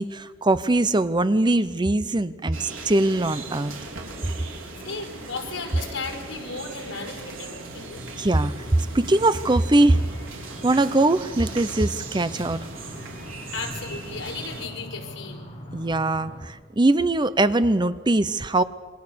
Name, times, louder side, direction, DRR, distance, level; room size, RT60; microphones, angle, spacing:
voice 1, 0.0-3.7 8.2-8.5 8.9-10.0 10.6-12.6 15.7-18.6, right 2 dB, 20° right, 14 dB, 0.6 m, -21 dB
sound 1, 2.5-14.7, right 3 dB, 90° right, 4.7 m, -38 dB
voice 2, 4.8-8.0 13.5-15.5, left 4 dB, 70° left, 3 dB, 4.8 m, -35 dB
sound 2, 8.6-16.5, equal, 25° left, 6.6 m, -42 dB
27.5 x 23.5 x 6.9 m, 1.4 s
head